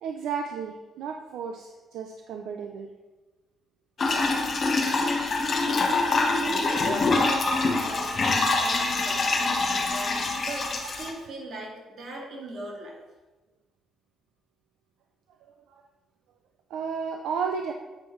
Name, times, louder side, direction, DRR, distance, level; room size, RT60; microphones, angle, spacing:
voice 1, 0.0-2.9 15.4-15.8 16.7-17.7, right 6 dB, 85° right, 4 dB, 0.5 m, -33 dB
sound 1, 4.0-11.1, left 3 dB, 45° left, 1.3 m, -25 dB
voice 2, 6.3-13.0, right 1 dB, 60° right, -2 dB, 2.2 m, -39 dB
8.3 x 6.2 x 3.2 m, 1.2 s
cardioid pair, 90°, 0 cm